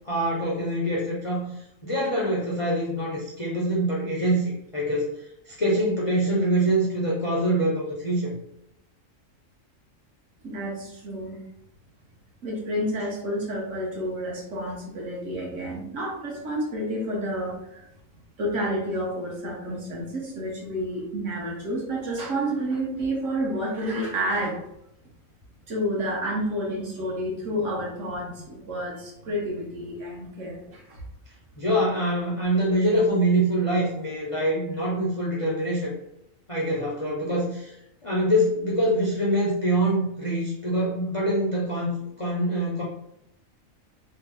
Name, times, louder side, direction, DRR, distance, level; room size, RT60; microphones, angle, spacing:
voice 1, 0.1-1.4 1.8-5.1 5.5-8.3 31.6-35.9 36.5-37.7 38.0-41.9 42.2-42.8, right 1 dB, 40° left, -5 dB, 0.4 m, -24 dB
voice 2, 10.4-11.4 12.4-17.9 18.4-24.6 25.7-31.0, equal, 70° right, -3 dB, 1.3 m, -30 dB
3.3 x 2.0 x 3.4 m, 0.79 s
omnidirectional pair, 1.4 m